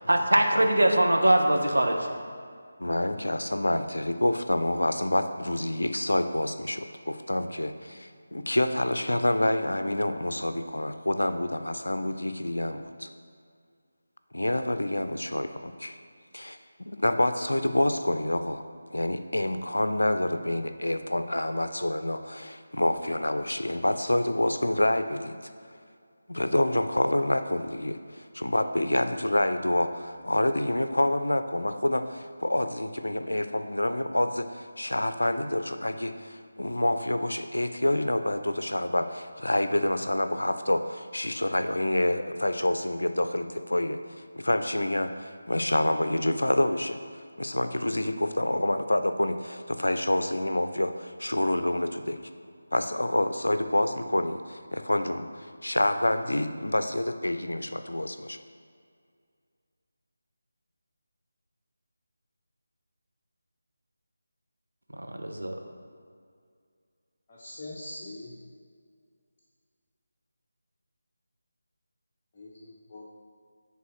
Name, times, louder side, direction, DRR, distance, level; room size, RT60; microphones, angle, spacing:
voice 1, 0.1-2.2 64.9-65.5, right 1 dB, 85° right, 2 dB, 0.9 m, -22 dB
voice 2, 2.8-13.1 14.3-16.0 16.3-18.6 18.9-25.5 26.3-44.0 44.4-52.2 52.7-58.4, left 1 dB, 80° left, 9 dB, 0.4 m, -27 dB
voice 3, 67.3-68.4 72.3-73.0, left 1 dB, 25° left, -7 dB, 0.8 m, -42 dB
8.7 x 3.6 x 4.3 m, 2.2 s
figure-of-eight pair, 160°, 0 cm